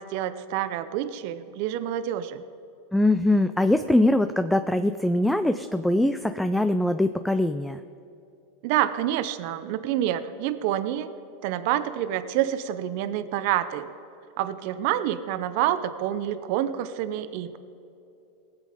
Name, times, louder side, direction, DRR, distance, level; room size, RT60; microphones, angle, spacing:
voice 1, 0.0-2.4 8.6-11.1 11.4-13.9 14.4-17.6, right 12 dB, 60° right, 12 dB, 0.7 m, -27 dB
voice 2, 2.9-7.8, left 1 dB, 5° left, 10 dB, 0.4 m, -22 dB
19.0 x 7.7 x 5.0 m, 2.8 s
supercardioid pair, 120°, 0 cm